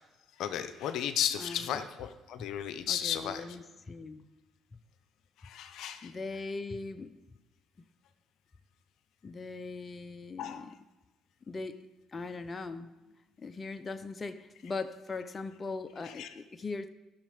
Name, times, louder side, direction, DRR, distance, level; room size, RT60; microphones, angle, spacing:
voice 1, 0.4-3.4 5.4-6.1 10.4-10.7 16.2-16.3, left 10 dB, 70° left, 0.7 m, -34 dB
voice 2, 1.4-1.9 2.9-4.2 6.0-7.2 9.2-10.8 11.5-13.0 13.4-16.9, left 3 dB, 35° left, 0.7 m, -40 dB
13.5 x 6.5 x 5.2 m
supercardioid pair, 65°, 0 cm